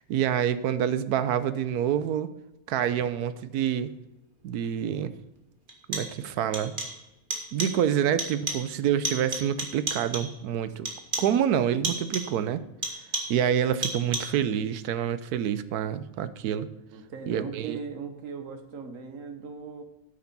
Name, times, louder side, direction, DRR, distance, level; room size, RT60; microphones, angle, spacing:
voice 1, 0.1-2.3 2.7-3.9 4.4-5.1 5.9-6.7 7.5-10.9 11.2-12.6 13.3-16.7 17.3-17.8, right 9 dB, 75° right, 13 dB, 1.1 m, -27 dB
sound 1, 4.6-4.7 5.7-6.3 6.5-7.1 7.3-7.9 8.2-8.8 9.0-10.4 10.9-11.4 11.8-12.4 12.8-13.5 13.8-14.5, right 2 dB, 35° right, 1.7 m, -33 dB
voice 2, 16.9-19.8, right 5 dB, 60° right, 6 dB, 1.5 m, -38 dB
9.7 x 6.7 x 5.4 m, 0.92 s
omnidirectional pair, 1.7 m